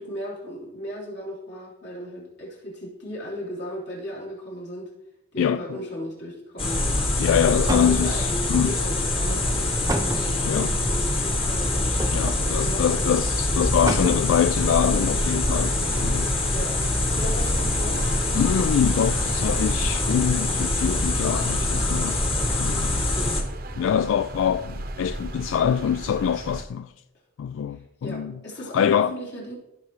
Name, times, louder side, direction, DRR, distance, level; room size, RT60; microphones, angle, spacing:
voice 1, 0.0-4.9 5.3-7.1 7.4-13.1 16.5-16.9 17.2-18.1 23.1-23.4 27.7-29.5, equal, 60° left, 3.5 m, -36 dB
voice 2, 5.4-5.8 7.2-8.8 10.4-10.7 12.1-16.4 18.3-23.1 23.8-26.9 27.4-28.4 28.7-29.1, left 8 dB, 90° left, 0.3 m, -24 dB
sound 1, 6.6-23.4, left 2 dB, 30° left, 1.5 m, -24 dB
sound 2, 7.3-7.4 7.7-8.4 9.9-10.6 12.0-12.5 13.0-13.1 13.3-13.4 13.9-14.4 14.8-14.9, right 1 dB, 20° right, 0.6 m, -30 dB
sound 3, 14.6-26.6, right 1 dB, 50° right, 0.8 m, -36 dB
15.5 x 5.8 x 3.1 m
head